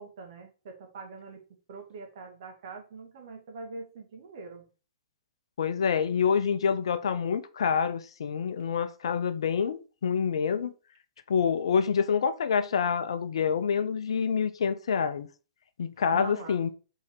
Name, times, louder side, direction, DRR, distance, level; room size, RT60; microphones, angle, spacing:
voice 1, 0.0-1.4 1.7-4.7 16.1-16.7, right 4 dB, 50° right, 1.8 m, -43 dB
voice 2, 5.6-10.7 11.3-15.3 15.8-16.7, left 6 dB, 60° left, 0.6 m, -27 dB
5.6 x 3.9 x 4.4 m
figure-of-eight pair, 110°, 3 cm